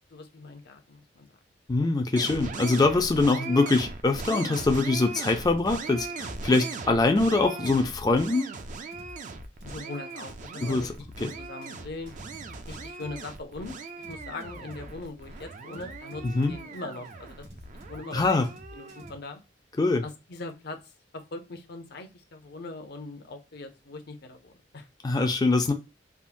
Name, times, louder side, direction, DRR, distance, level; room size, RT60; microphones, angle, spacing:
voice 1, 0.1-1.3 1.8-1.9 9.6-10.9 11.2-12.1 12.7-13.8 14.1-17.5 17.9-18.4 18.7-19.4 20.0-20.8 21.1-24.9, left 3 dB, 60° left, 0.7 m, -41 dB
voice 2, 1.7-8.5 10.6-10.9 11.2-11.3 16.2-16.5 18.1-18.5 19.8-20.0 25.0-25.7, left 3 dB, 20° left, 0.4 m, -23 dB
sound 1, 2.2-19.1, right 4 dB, 45° right, 0.4 m, -39 dB
sound 2, 5.5-19.2, left 1 dB, 75° right, 1.6 m, -48 dB
3.5 x 2.1 x 2.5 m
head